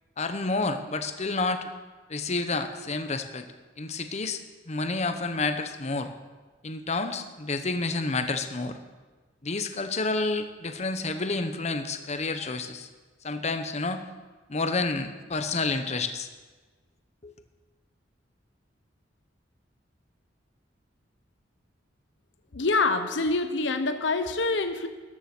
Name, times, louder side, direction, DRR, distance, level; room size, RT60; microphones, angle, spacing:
voice 1, 0.2-1.7 2.1-3.5 3.8-4.4 4.7-6.1 6.6-8.8 9.4-12.9 13.2-14.0 14.5-16.3 17.2-17.3, left 3 dB, 40° left, 7 dB, 1.0 m, -29 dB
voice 2, 22.5-24.9, left 3 dB, 75° left, 8 dB, 0.9 m, -26 dB
14.0 x 10.0 x 6.1 m, 1.3 s
head